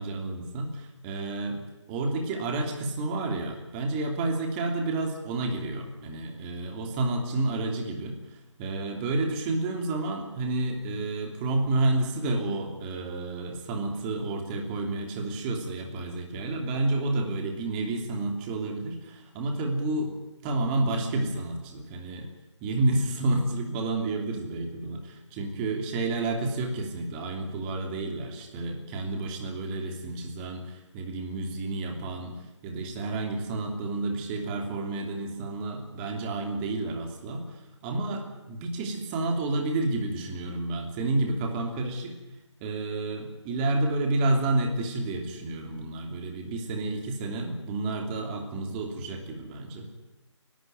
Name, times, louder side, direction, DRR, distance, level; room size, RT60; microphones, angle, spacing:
voice 1, 0.0-1.6 1.9-20.1 20.4-22.3 22.6-42.1 42.6-49.9, right 2 dB, 20° right, 3 dB, 3.0 m, -30 dB
28.0 x 12.5 x 9.4 m, 1.0 s
figure-of-eight pair, 150°, 15 cm